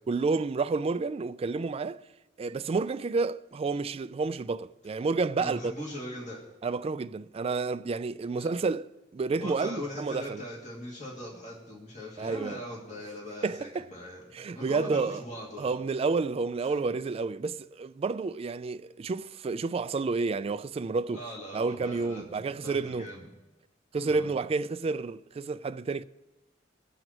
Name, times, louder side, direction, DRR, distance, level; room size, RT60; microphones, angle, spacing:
voice 1, 0.1-2.1 2.4-5.7 6.6-10.4 12.2-12.6 13.4-13.9 14.3-15.2 15.6-21.2 21.5-23.1 23.9-26.0, right 4 dB, 30° right, 0.3 m, -30 dB
voice 2, 5.4-6.4 8.4-8.5 9.4-15.8 21.1-23.3 24.0-24.4, left 1 dB, 40° left, 2.5 m, -41 dB
23.0 x 7.8 x 3.0 m
head